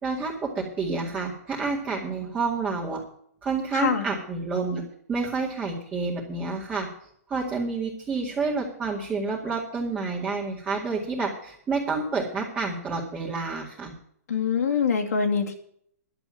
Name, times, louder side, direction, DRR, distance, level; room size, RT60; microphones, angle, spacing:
voice 1, 0.0-3.0 3.4-4.8 5.1-6.9 7.3-13.9, right 4 dB, 15° right, -4 dB, 2.2 m, -29 dB
voice 2, 14.3-15.5, left 6 dB, 80° left, 2 dB, 2.5 m, -24 dB
11.5 x 7.1 x 8.9 m, 0.65 s
hypercardioid pair, 155°, 8 cm